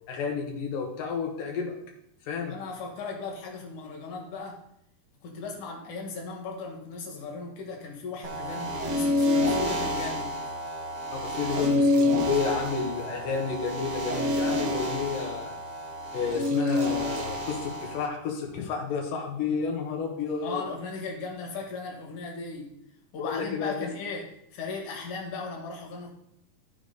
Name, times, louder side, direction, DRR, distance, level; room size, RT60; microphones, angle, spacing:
voice 1, 0.1-1.7 2.3-2.5 11.2-15.5 16.1-20.6 23.2-23.8, left 5 dB, 90° left, 0 dB, 2.9 m, -31 dB
voice 2, 2.4-4.6 5.2-10.3 20.4-22.7 23.1-26.1, left 4 dB, 65° left, 0 dB, 3.0 m, -37 dB
sound 1, 8.2-18.1, left 1 dB, 50° right, 1.4 m, -28 dB
13.0 x 5.0 x 3.9 m, 0.76 s
omnidirectional pair, 3.8 m